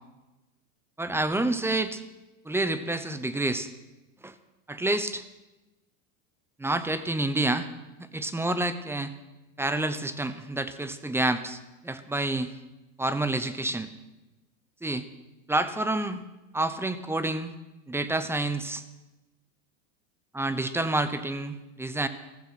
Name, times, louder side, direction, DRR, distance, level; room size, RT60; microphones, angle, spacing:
voice 1, 1.0-2.0 2.5-3.7 4.2-4.3 4.7-5.2 6.6-7.7 8.0-9.1 9.6-12.5 13.0-13.9 14.8-15.1 15.5-16.2 16.5-17.5 17.9-18.8 20.3-22.1, right 2 dB, 5° right, 12 dB, 0.8 m, -28 dB
15.0 x 14.0 x 5.9 m, 1.0 s
supercardioid pair, 120°, 42 cm